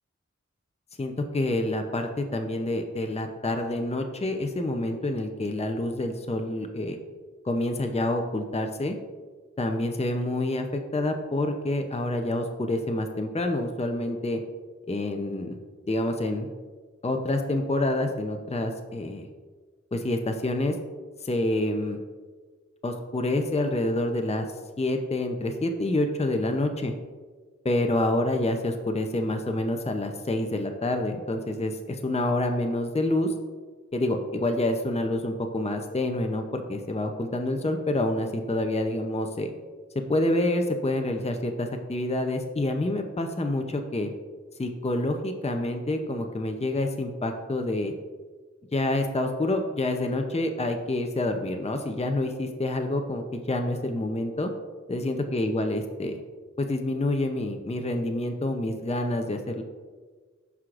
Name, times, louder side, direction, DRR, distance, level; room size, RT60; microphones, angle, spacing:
voice 1, 1.0-7.0 7.4-8.9 9.6-14.4 14.9-15.6 15.9-16.5 17.0-19.3 19.9-20.8 21.2-22.0 22.8-24.5 24.8-26.9 27.6-33.3 33.9-39.5 39.9-44.1 44.6-47.9 48.7-54.5 54.9-56.2 56.6-59.6, left 1 dB, 20° left, 5 dB, 0.6 m, -27 dB
13.5 x 4.8 x 2.5 m, 1.4 s
wide cardioid pair, 45°, 30 cm